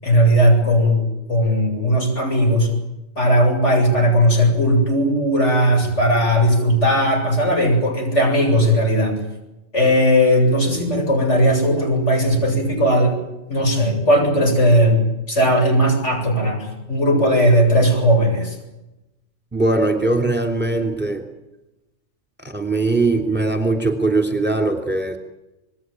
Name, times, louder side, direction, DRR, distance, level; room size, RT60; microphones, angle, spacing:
voice 1, 0.0-2.7 3.2-9.2 9.7-13.2 13.5-15.0 15.3-18.6, equal, 80° left, 3 dB, 8.4 m, -17 dB
voice 2, 19.5-21.2 22.4-25.2, right 2 dB, 10° right, 5 dB, 3.0 m, -20 dB
27.5 x 20.5 x 9.3 m, 0.97 s
omnidirectional pair, 1.2 m